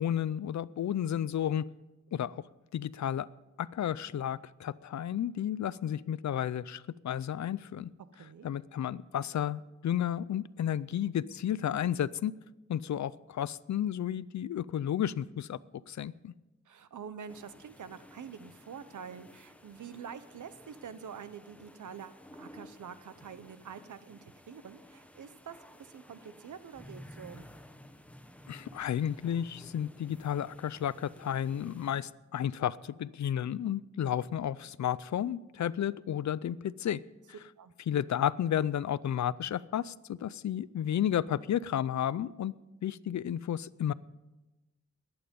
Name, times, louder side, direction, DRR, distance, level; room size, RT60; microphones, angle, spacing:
voice 1, 0.0-1.6 2.1-2.4 2.7-3.3 3.6-7.9 8.4-12.3 12.7-15.6 15.9-16.3 28.5-37.0 37.9-42.5 42.8-43.9, left 10 dB, 70° left, 19 dB, 0.5 m, -32 dB
voice 2, 8.1-8.5 16.7-27.5 37.6-37.7, right 7 dB, 80° right, 13 dB, 0.8 m, -46 dB
sound 1, 17.3-32.0, equal, 5° left, 0.8 m, -54 dB
21.0 x 8.8 x 5.3 m, 1.1 s
wide cardioid pair, 110°, 30 cm